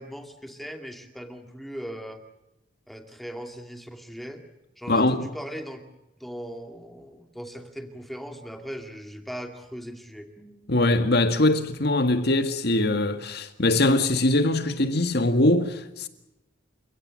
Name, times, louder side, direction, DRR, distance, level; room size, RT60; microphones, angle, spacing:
voice 1, 0.0-2.2 2.9-4.4 4.8-5.8 6.2-10.7, equal, ahead, 2.3 m, -39 dB
voice 2, 4.9-5.3 10.7-16.1, left 2 dB, 55° left, 1.9 m, -22 dB
29.5 x 17.0 x 7.7 m
head